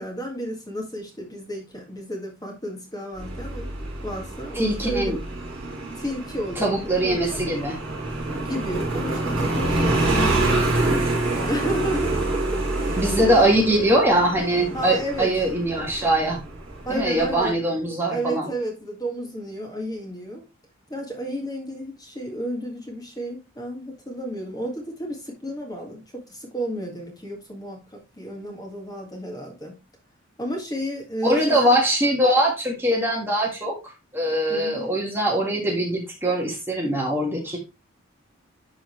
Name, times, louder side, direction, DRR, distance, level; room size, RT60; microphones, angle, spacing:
voice 1, 0.0-3.7 4.0-5.1 5.9-7.2 8.4-13.5 14.7-15.3 16.8-17.6 18.1-20.4 20.9-29.8 30.4-31.8 34.5-35.0, equal, 20° left, 1.7 m, -32 dB
Motorcycle, 3.2-17.5, right 2 dB, 25° right, 4.3 m, -27 dB
voice 2, 4.5-5.2 6.6-7.8 12.9-16.4 16.9-18.5 31.2-33.8 34.1-37.6, right 1 dB, 10° right, 1.6 m, -22 dB
11.5 x 3.9 x 3.1 m
head